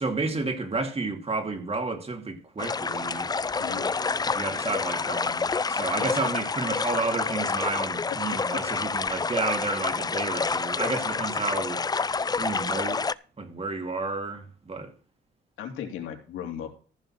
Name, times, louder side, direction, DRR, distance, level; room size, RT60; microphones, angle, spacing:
voice 1, 0.0-3.3 4.3-11.8 12.4-13.1 13.4-14.9, right 3 dB, 30° right, 2.8 m, -31 dB
sound 1, 2.6-13.1, left 4 dB, 20° left, 0.5 m, -28 dB
voice 2, 3.6-3.9 6.0-6.1 8.7-8.9 15.6-16.7, left 9 dB, 85° left, 3.1 m, -36 dB
15.0 x 5.5 x 6.1 m
cardioid pair, 90°, 20 cm